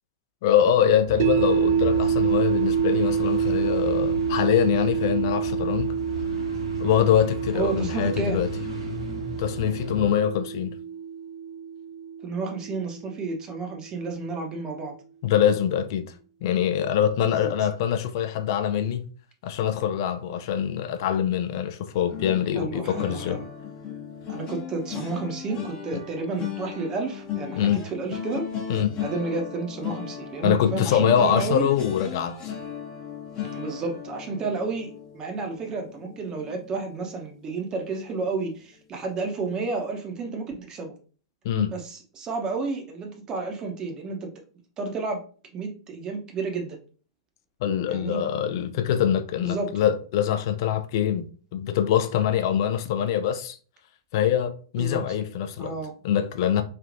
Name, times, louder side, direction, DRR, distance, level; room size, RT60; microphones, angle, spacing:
voice 1, 0.4-6.3 6.8-8.5 9.4-10.8 15.2-16.1 16.4-19.1 19.4-23.4 27.5-27.8 28.7-28.9 30.4-32.5 41.4-41.7 47.6-53.6 54.1-55.8 56.0-56.6, left 9 dB, 50° left, 0.4 m, -24 dB
sound 1, 1.1-10.1, left 1 dB, 85° right, 1.5 m, -35 dB
sound 2, 1.2-13.3, right 7 dB, 50° right, 0.3 m, -27 dB
voice 2, 7.5-8.4 12.2-14.9 17.3-17.5 22.6-23.4 24.3-28.4 29.0-31.7 33.5-41.0 41.7-44.3 44.8-45.2 45.5-46.8 47.9-48.2 49.4-49.7 54.8-55.0 55.6-55.9, right 4 dB, 25° right, 0.8 m, -31 dB
sound 3, 22.1-37.2 37.6-37.9 38.2-38.4, left 8 dB, 35° left, 0.9 m, -37 dB
3.2 x 2.4 x 2.5 m
figure-of-eight pair, 105°, 3 cm